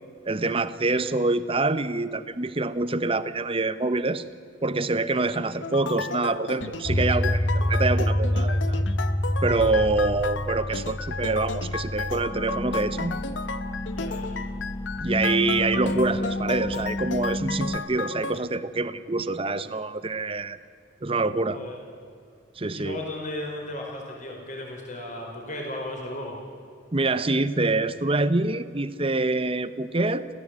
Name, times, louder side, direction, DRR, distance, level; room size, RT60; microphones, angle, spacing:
voice 1, 0.2-4.2 4.6-8.9 9.4-13.2 15.0-20.6 21.0-21.6 22.6-23.0 26.9-30.3, right 3 dB, 30° right, 13 dB, 0.9 m, -26 dB
sound 1, 5.6-18.4, left 4 dB, 70° left, 0.9 m, -34 dB
sound 2, 6.9-17.8, left 1 dB, 15° left, 0.6 m, -28 dB
voice 2, 13.9-14.3 21.5-21.7 22.7-26.4, left 1 dB, 40° left, 0 dB, 4.9 m, -35 dB
26.5 x 16.5 x 8.3 m, 2.3 s
head